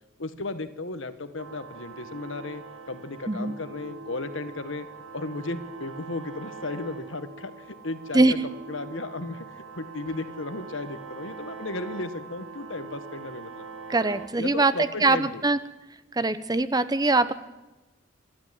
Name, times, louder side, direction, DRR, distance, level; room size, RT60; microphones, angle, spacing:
voice 1, 0.2-4.9 5.1-8.4 8.7-13.6 14.4-15.4, left 2 dB, 65° left, 11 dB, 1.5 m, -35 dB
sound 1, 1.4-14.3, right 4 dB, 80° right, 2.4 m, -43 dB
voice 2, 13.9-14.7 15.0-15.6 16.1-17.3, right 2 dB, 20° right, 13 dB, 0.8 m, -22 dB
26.0 x 12.5 x 9.4 m, 1.1 s
head